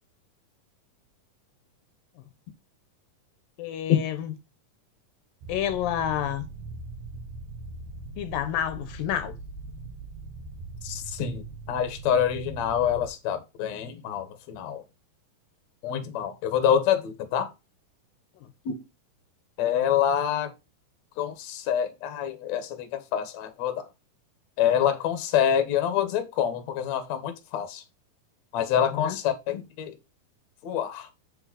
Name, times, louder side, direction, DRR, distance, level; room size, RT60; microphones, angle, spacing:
voice 1, 3.6-4.3 5.5-6.5 8.2-9.4 18.4-18.5 28.9-29.2, left 10 dB, 80° left, 2.5 m, -29 dB
sound 1, 5.4-13.1, right 3 dB, 65° right, 2.7 m, -41 dB
voice 2, 10.8-14.8 15.8-17.5 18.7-18.8 19.6-20.5 21.2-23.9 24.6-27.8 28.5-30.0 30.6-31.1, left 9 dB, 60° left, 2.3 m, -26 dB
8.0 x 5.6 x 4.2 m
omnidirectional pair, 4.1 m